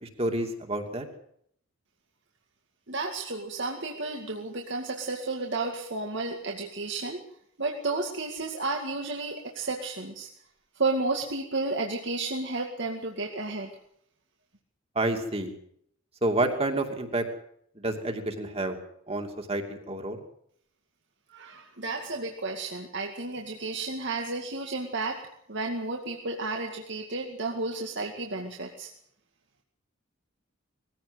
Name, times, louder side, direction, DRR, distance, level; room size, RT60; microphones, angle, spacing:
voice 1, 0.0-1.0 15.0-15.6 16.2-17.2 17.8-18.8 19.1-20.2, right 2 dB, 30° right, 4 dB, 2.8 m, -29 dB
voice 2, 2.9-7.2 7.6-10.3 10.8-13.7 21.3-25.2 25.5-28.9, right 3 dB, 60° right, 1 dB, 2.2 m, -32 dB
20.5 x 16.0 x 8.1 m, 0.68 s
head